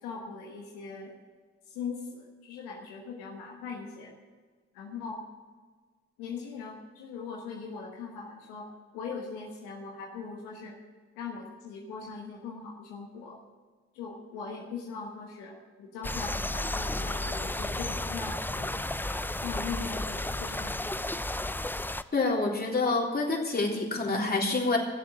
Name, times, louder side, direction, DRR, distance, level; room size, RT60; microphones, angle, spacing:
voice 1, 0.0-1.1 1.7-4.1 4.7-5.2 6.2-10.8 11.1-13.4 13.9-19.1 19.4-21.1, left 5 dB, 90° left, -1 dB, 1.4 m, -40 dB
sound 1, 16.0-22.0, left 1 dB, 5° left, 0.6 m, -33 dB
voice 2, 22.1-24.8, left 3 dB, 30° left, -2 dB, 3.6 m, -27 dB
16.0 x 7.6 x 7.4 m, 1.5 s
hypercardioid pair, 40°, 29 cm